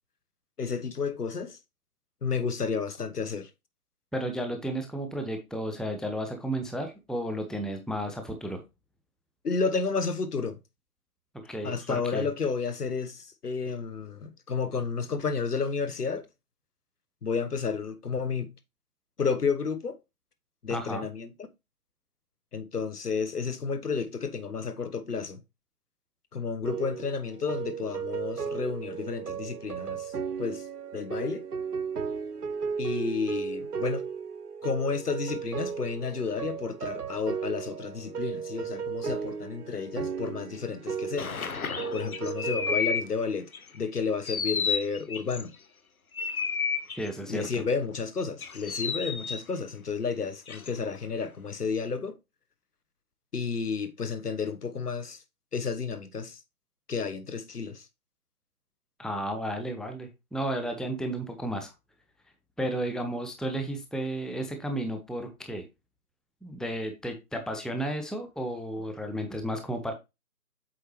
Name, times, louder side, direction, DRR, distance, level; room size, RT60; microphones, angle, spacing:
voice 1, 0.6-1.6 2.2-3.5 9.4-10.6 11.6-16.3 17.2-18.5 19.2-20.0 20.6-21.3 22.5-25.4 26.3-30.1 30.4-30.6 30.9-31.4 32.8-34.1 34.6-41.3 41.9-43.5 43.7-45.5 47.3-52.2 53.3-55.2 55.5-56.4 56.9-57.8, left 5 dB, 85° left, 1.2 m, -31 dB
voice 2, 4.1-8.6 11.4-12.3 20.7-21.1 47.0-47.6 59.0-61.7 62.6-65.6 66.4-69.9, right 1 dB, ahead, 0.5 m, -33 dB
sound 1, 26.6-42.7, right 6 dB, 85° right, 0.9 m, -35 dB
sound 2, 41.2-43.0 43.5-43.8 44.3-45.4 46.2-47.1 48.4-49.4 50.5-51.0, left 6 dB, 70° left, 0.9 m, -31 dB
7.8 x 4.6 x 3.1 m
figure-of-eight pair, 180°, 45 cm